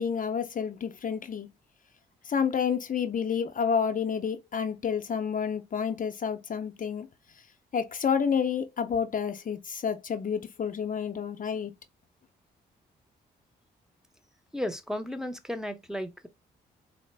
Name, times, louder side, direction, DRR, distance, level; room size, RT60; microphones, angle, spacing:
voice 1, 0.0-1.5 2.3-7.1 7.7-11.7, left 7 dB, 45° left, 0.5 m, -29 dB
voice 2, 14.5-16.3, left 1 dB, 5° right, 0.7 m, -34 dB
4.0 x 2.0 x 3.2 m
supercardioid pair, 60°, 20 cm